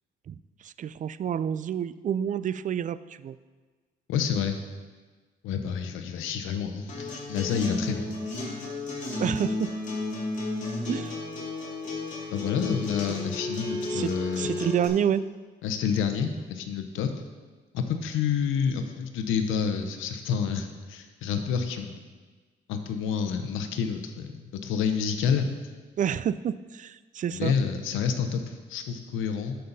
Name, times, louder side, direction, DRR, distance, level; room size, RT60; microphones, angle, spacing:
voice 1, 0.6-3.4 9.2-9.7 10.9-11.2 13.9-14.1 14.4-15.2 26.0-27.5, right 9 dB, 40° right, 15 dB, 0.4 m, -28 dB
voice 2, 4.1-4.6 5.4-8.1 12.3-14.5 15.6-17.1 17.7-22.0 22.7-25.5 27.3-29.6, left 7 dB, 90° left, 7 dB, 0.9 m, -28 dB
Acoustic guitar, 6.9-14.9, left 2 dB, 40° left, 3.2 m, -33 dB
13.0 x 5.7 x 4.0 m, 1.4 s
cardioid pair, 90°, 20 cm